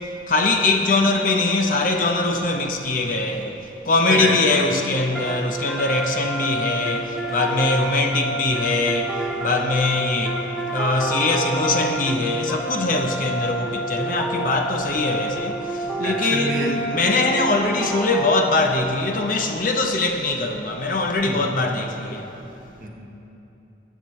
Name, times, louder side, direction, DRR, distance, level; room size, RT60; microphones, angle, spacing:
voice 1, 0.0-22.7, left 2 dB, 45° left, 0.7 m, -22 dB
voice 2, 4.1-4.4 16.0-16.7 21.2-21.5 22.8-22.9, right 2 dB, 45° right, 1.3 m, -27 dB
sound 1, 5.1-19.0, right 1 dB, ahead, 0.7 m, -29 dB
18.5 x 8.1 x 3.2 m
head